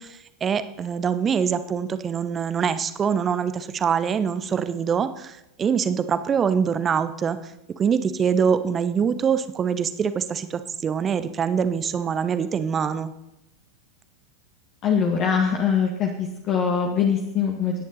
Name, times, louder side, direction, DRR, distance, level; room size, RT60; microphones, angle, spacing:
voice 1, 0.0-7.4 7.8-13.1, right 7 dB, 25° right, 12 dB, 1.0 m, -24 dB
voice 2, 14.8-17.7, left 7 dB, 35° left, 1 dB, 1.9 m, -22 dB
24.0 x 10.5 x 4.2 m, 0.92 s
figure-of-eight pair, 90°, 0 cm